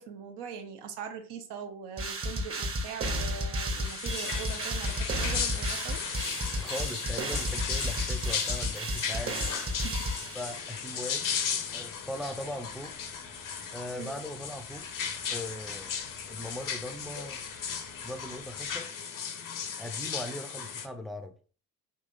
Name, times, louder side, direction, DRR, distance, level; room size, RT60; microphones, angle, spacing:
voice 1, 0.0-6.0 9.8-10.0 13.9-14.2, right 6 dB, 65° right, 0.8 m, -41 dB
sound 1, 2.0-10.8, equal, 30° right, 0.9 m, -33 dB
sound 2, 3.7-20.9, left 7 dB, 45° left, 0.8 m, -36 dB
sound 3, 4.4-18.7, left 1 dB, 85° left, 1.7 m, -54 dB
voice 2, 6.6-9.8 10.3-11.3 11.7-13.0 13.7-14.9 15.3-17.4 18.0-18.9 19.8-21.3, left 1 dB, ahead, 0.6 m, -40 dB
3.8 x 2.8 x 2.6 m
hypercardioid pair, 45°, 45 cm